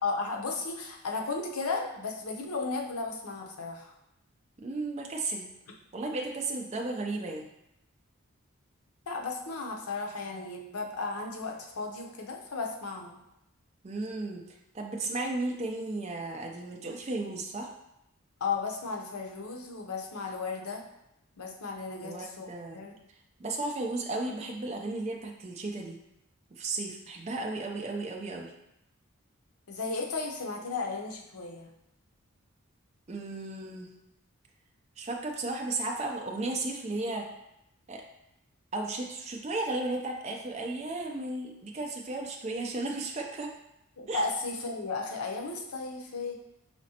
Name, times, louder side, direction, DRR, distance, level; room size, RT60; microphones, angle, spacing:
voice 1, 0.0-3.9 9.1-13.2 18.4-20.9 21.4-22.5 22.7-22.9 29.7-31.7 44.0-46.3, left 4 dB, 90° left, 2 dB, 0.7 m, -34 dB
voice 2, 4.6-5.5 5.9-7.5 13.8-14.4 14.7-17.7 22.0-22.8 23.4-26.0 26.5-28.5 33.1-33.9 35.0-37.2 37.9-38.0 38.7-43.5 44.1-44.2, right 2 dB, 30° right, 1 dB, 0.4 m, -34 dB
5.0 x 3.1 x 2.8 m, 0.84 s
head